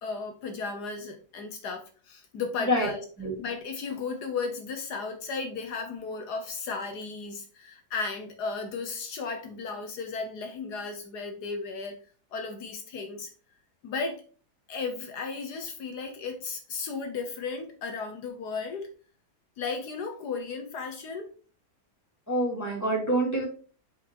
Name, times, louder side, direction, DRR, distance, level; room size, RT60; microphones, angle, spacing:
voice 1, 0.0-3.0 3.4-12.0 12.3-13.3 13.8-14.2 14.7-18.9 19.6-21.3, left 4 dB, 80° left, 4 dB, 1.6 m, -35 dB
voice 2, 22.3-23.4, right 1 dB, 10° left, -4 dB, 2.7 m, -26 dB
5.6 x 5.0 x 4.6 m, 0.39 s
omnidirectional pair, 1.7 m